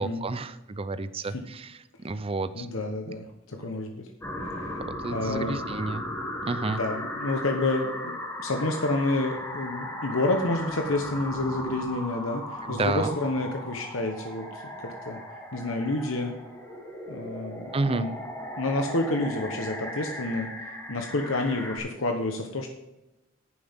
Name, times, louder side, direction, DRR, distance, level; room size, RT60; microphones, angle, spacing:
voice 1, 0.0-1.7 2.0-2.7 3.1-3.2 4.9-6.0 6.4-6.8 12.6-13.2 17.7-18.1, right 3 dB, 30° right, 12 dB, 0.5 m, -30 dB
voice 2, 2.5-4.1 4.4-4.8 5.1-5.6 6.7-15.2 15.5-16.3 17.1-18.2 18.6-20.6 20.9-22.7, left 2 dB, 80° left, 4 dB, 1.1 m, -29 dB
sound 1, 4.2-21.8, left 1 dB, 15° left, 2.0 m, -37 dB
11.0 x 9.6 x 3.6 m, 0.97 s
head